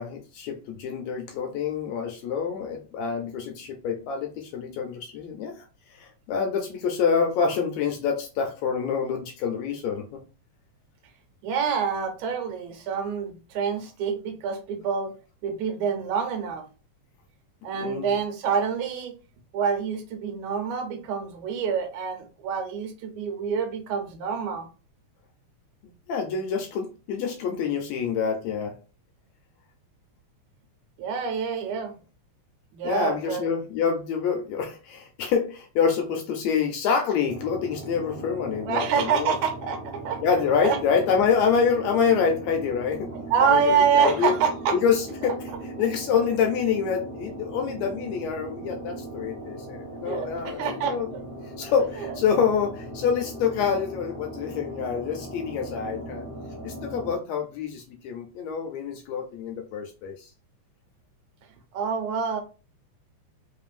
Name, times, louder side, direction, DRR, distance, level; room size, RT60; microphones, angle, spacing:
voice 1, 0.0-10.2 17.8-18.1 25.8-28.8 32.8-39.4 40.2-43.1 43.4-44.3 44.7-51.1 51.6-56.3 56.6-60.3, left 6 dB, 75° left, 4 dB, 1.7 m, -27 dB
voice 2, 11.4-15.1 15.4-16.7 17.6-19.1 19.5-24.7 31.0-31.9 32.7-33.4 38.7-40.2 40.6-40.8 43.1-44.8 45.8-45.9 50.1-51.0 51.6-52.1 61.7-62.4, right 6 dB, 75° right, 5 dB, 2.1 m, -26 dB
sound 1, 37.3-57.2, right 1 dB, 30° right, 1.0 m, -39 dB
3.9 x 3.7 x 2.5 m, 0.34 s
omnidirectional pair, 3.5 m